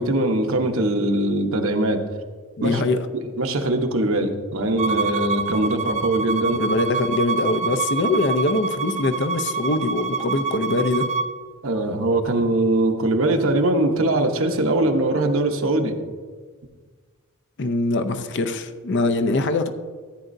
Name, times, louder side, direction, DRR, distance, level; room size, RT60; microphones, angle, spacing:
voice 1, 0.0-2.0 2.6-2.8 3.1-6.6 11.6-16.0, right 1 dB, 65° right, 4 dB, 1.0 m, -21 dB
voice 2, 2.6-3.0 6.6-11.1 17.6-19.7, left 2 dB, 55° left, 9 dB, 0.6 m, -23 dB
Bowed string instrument, 4.8-11.3, right 5 dB, 30° right, 0.4 m, -26 dB
14.5 x 9.1 x 2.7 m, 1.5 s
head